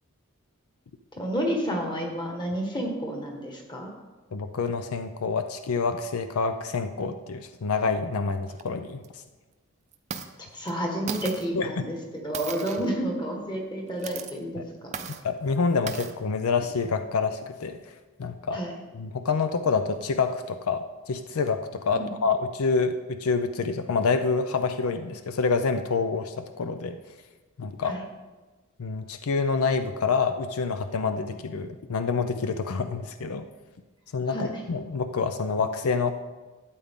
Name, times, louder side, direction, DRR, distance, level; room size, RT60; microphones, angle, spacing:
voice 1, 1.2-3.9 10.5-14.6 14.9-15.0 18.5-18.7 21.9-22.1 27.8-28.0 34.3-34.5, equal, 20° left, 1 dB, 1.5 m, -30 dB
voice 2, 4.3-9.0 11.5-11.8 14.6-14.7 15.2-17.8 18.2-18.6 18.9-27.0 27.6-28.0 28.8-33.4 34.1-36.1, left 4 dB, 80° left, 9 dB, 0.5 m, -27 dB
sound 1, 8.5-8.6 9.0-9.1 9.9-10.3 10.7-10.8 11.1-11.5 12.3-13.0 13.9-14.3 14.9-15.2 15.9-16.1, right 6 dB, 30° right, 0.5 m, -36 dB
12.5 x 8.3 x 3.6 m, 1.2 s
head